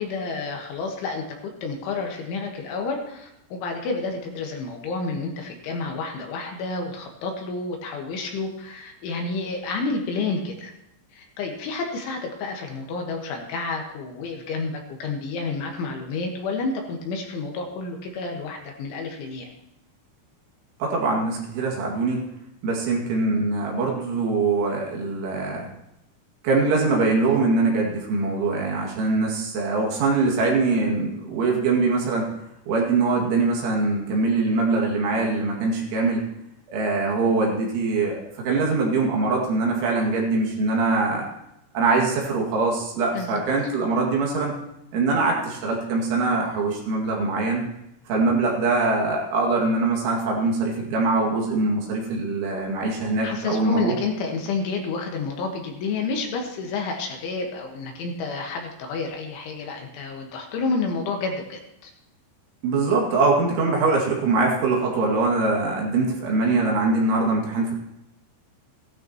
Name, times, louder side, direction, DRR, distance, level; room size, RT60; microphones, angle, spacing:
voice 1, 0.0-10.7 11.1-19.5 43.1-43.4 53.2-61.9, left 4 dB, 75° left, 2 dB, 3.7 m, -30 dB
voice 2, 20.8-22.3 22.6-25.7 26.4-32.3 32.7-36.2 36.7-41.2 41.7-44.6 44.9-47.6 48.1-53.9 62.6-67.8, right 3 dB, 70° right, -1 dB, 4.5 m, -23 dB
16.5 x 12.0 x 3.0 m, 0.85 s
omnidirectional pair, 5.9 m